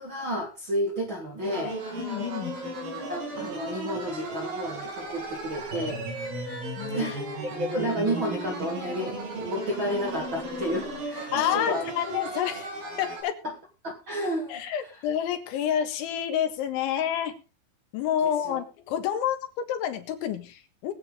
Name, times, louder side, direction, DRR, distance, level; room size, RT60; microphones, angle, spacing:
voice 1, 0.0-1.8 3.1-6.0 6.9-11.8 13.4-13.5 13.8-14.6 18.2-18.6, equal, 40° right, 1 dB, 1.9 m, -31 dB
sound 1, 1.4-13.2, right 1 dB, 55° right, 7.2 m, -35 dB
voice 2, 2.0-2.6 6.8-7.1 11.3-12.7 13.0-13.4 14.5-17.4 17.9-20.9, left 9 dB, 85° left, 7 dB, 3.9 m, -29 dB
21.5 x 8.4 x 3.8 m, 0.31 s
omnidirectional pair, 5.3 m